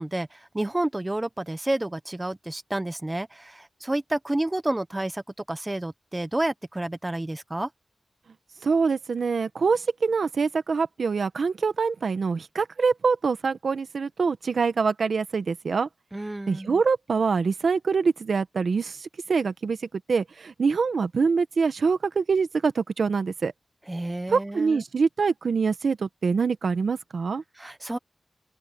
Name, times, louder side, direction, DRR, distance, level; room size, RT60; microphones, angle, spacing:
voice 1, 0.0-5.2 5.5-7.7 16.1-16.8 23.9-24.8 27.6-28.0, right 1 dB, 20° right, 0.9 m, -30 dB
voice 2, 8.6-15.9 16.5-19.8 20.1-23.5 24.3-27.4, right 5 dB, 75° right, 1.3 m, -25 dB
open air
wide cardioid pair, 80°, 0 cm